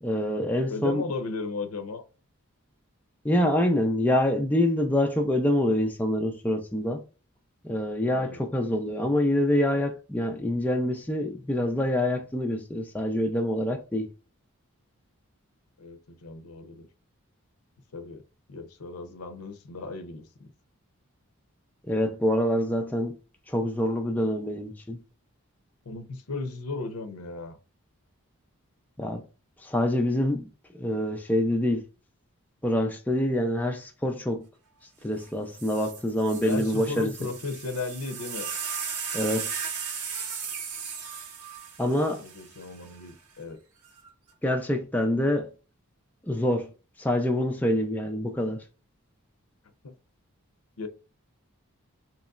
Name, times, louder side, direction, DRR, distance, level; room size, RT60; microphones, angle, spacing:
voice 1, 0.0-1.0 3.2-7.0 7.6-14.1 21.9-23.1 23.5-25.0 29.0-29.2 29.6-30.5 30.7-31.9 32.6-34.4 35.0-37.3 39.1-39.5 41.8-42.2 44.4-45.5 46.2-46.7 47.0-48.6, left 1 dB, 5° left, 0.4 m, -26 dB
voice 2, 0.7-2.0 8.1-8.4 15.8-16.9 17.9-18.2 18.5-20.5 25.9-27.6 36.4-38.5 41.9-43.6 49.8-49.9 50.8-50.9, left 3 dB, 85° left, 0.7 m, -36 dB
sound 1, 35.2-35.3 35.5-42.9 43.8-44.3, right 6 dB, 90° right, 1.0 m, -36 dB
3.9 x 3.0 x 2.3 m
head